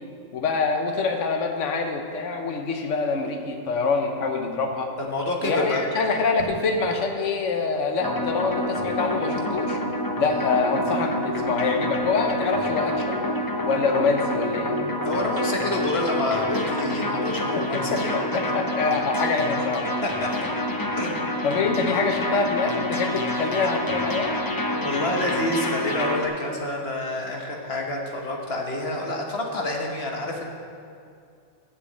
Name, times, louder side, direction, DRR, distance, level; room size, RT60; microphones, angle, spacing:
voice 1, 0.3-4.9 5.4-9.8 10.2-13.2 13.6-14.8 17.5-19.9 21.4-24.4, left 4 dB, 70° left, 4 dB, 1.2 m, -25 dB
voice 2, 5.0-5.8 14.6-18.1 20.0-20.1 21.0-21.6 24.7-30.5, left 2 dB, 50° left, 0 dB, 1.4 m, -28 dB
sound 1, 8.0-26.3, left 1 dB, 20° left, 0.6 m, -27 dB
7.6 x 7.1 x 8.1 m, 2.4 s
omnidirectional pair, 1.4 m